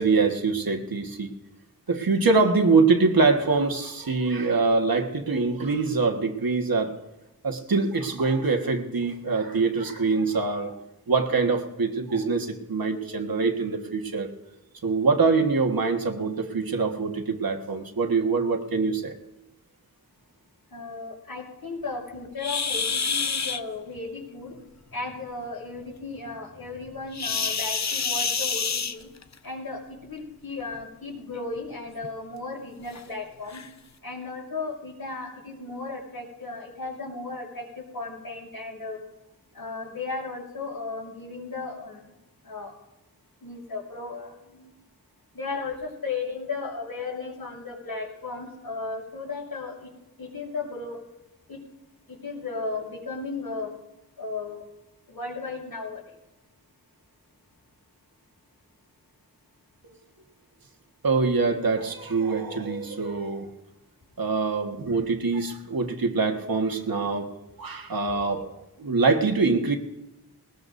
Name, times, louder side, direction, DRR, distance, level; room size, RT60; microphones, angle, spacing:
voice 1, 0.0-1.3 1.9-6.9 7.4-10.7 11.1-14.3 14.8-19.1 61.0-63.5 64.2-67.3 67.6-69.8, right 4 dB, 70° right, 4 dB, 1.6 m, -24 dB
voice 2, 20.7-24.6 24.9-29.1 29.4-33.6 34.0-39.0 39.5-42.0 42.4-42.7 43.4-44.7 45.3-49.9 50.2-51.0 51.5-51.6 52.1-53.8 54.2-54.6 55.1-56.1, left 3 dB, 80° left, -5 dB, 6.4 m, -35 dB
sound 1, 22.4-23.6 27.1-29.4 30.6-30.8 31.4-31.5 32.0-32.1 32.9-33.0 33.5-33.7, left 5 dB, 50° left, 0.7 m, -27 dB
20.0 x 20.0 x 2.7 m, 0.98 s
wide cardioid pair, 85°, 37 cm